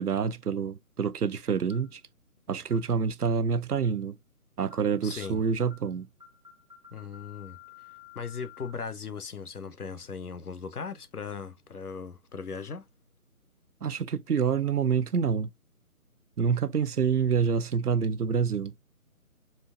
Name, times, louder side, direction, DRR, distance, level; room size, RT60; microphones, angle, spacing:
voice 1, 0.0-2.0 2.5-4.2 4.6-6.1 13.8-15.5 16.4-18.7, right 6 dB, 85° right, 0.6 m, -27 dB
sound 1, 1.7-2.0 2.7-2.9 3.7-4.0 4.7-4.9 5.2-5.4 5.7-5.9 6.2-8.7, left 10 dB, 30° right, 0.6 m, -52 dB
voice 2, 5.0-5.4 6.9-7.6 8.1-12.9, left 5 dB, 80° left, 0.8 m, -38 dB
4.4 x 3.2 x 2.4 m
figure-of-eight pair, 150°, 44 cm